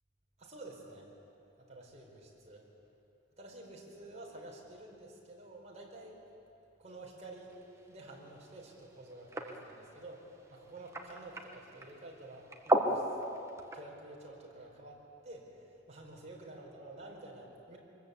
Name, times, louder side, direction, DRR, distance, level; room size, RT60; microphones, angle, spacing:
voice 1, 0.4-1.1 1.6-2.7 3.4-6.2 6.8-7.5 7.9-13.1 13.7-17.8, right 2 dB, 35° right, -2 dB, 4.7 m, -50 dB
sound 1, 7.5-13.8, right 1 dB, 15° right, 1.6 m, -37 dB
24.0 x 21.0 x 8.4 m, 2.8 s
head